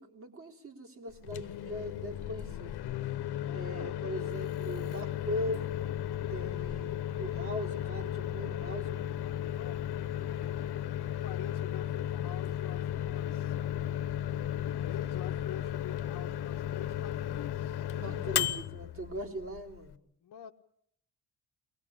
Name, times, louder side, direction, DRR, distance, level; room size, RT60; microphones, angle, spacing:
voice 1, 0.0-2.7 3.5-5.7 6.3-9.2 17.9-20.0, equal, 35° right, 1 dB, 3.3 m, -40 dB
Microwave oven, 1.1-19.9, left 11 dB, 75° left, 1.0 m, -35 dB
voice 2, 3.4-3.9 9.4-9.9 10.4-13.5 14.6-18.4 20.2-20.5, left 10 dB, 55° left, 0 dB, 1.1 m, -47 dB
23.0 x 19.5 x 8.6 m, 0.70 s
wide cardioid pair, 180°, 39 cm